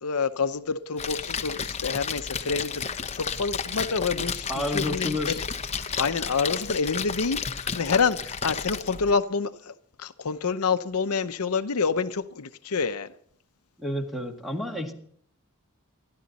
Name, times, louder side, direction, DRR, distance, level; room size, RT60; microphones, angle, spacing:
voice 1, 0.0-4.5 4.7-5.3 6.0-13.1, left 5 dB, 75° left, 0.7 m, -27 dB
Splash splatter, 1.0-9.1, left 6 dB, 30° left, 0.8 m, -32 dB
voice 2, 4.5-5.4 13.8-14.9, left 1 dB, ahead, 1.9 m, -30 dB
27.5 x 11.5 x 4.1 m
head